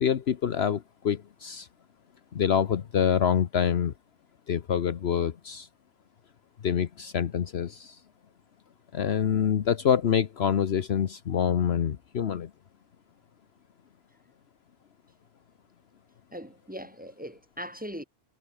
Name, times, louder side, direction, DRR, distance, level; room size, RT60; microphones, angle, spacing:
voice 1, 0.0-1.7 2.3-3.9 4.5-5.7 6.6-8.0 8.9-12.5, left 8 dB, 65° left, 1.1 m, -26 dB
voice 2, 16.3-18.0, equal, 5° right, 6.3 m, -40 dB
omnidirectional pair, 1.2 m